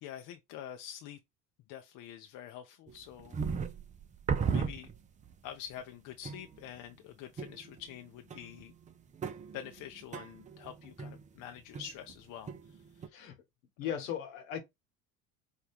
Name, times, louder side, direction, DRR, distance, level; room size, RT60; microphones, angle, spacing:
voice 1, 0.0-1.2 1.7-3.4 4.5-4.9 5.4-8.7 9.5-12.5 13.0-13.2 13.8-14.0, left 10 dB, 45° left, 0.6 m, -46 dB
sound 1, 2.9-5.4 5.8-5.9 6.2-6.8 7.4-8.0 8.3-12.2 12.5-13.1, right 6 dB, 20° right, 0.4 m, -37 dB
voice 2, 13.8-14.6, left 9 dB, 65° left, 1.1 m, -37 dB
4.8 x 2.2 x 3.3 m
hypercardioid pair, 70°, 43 cm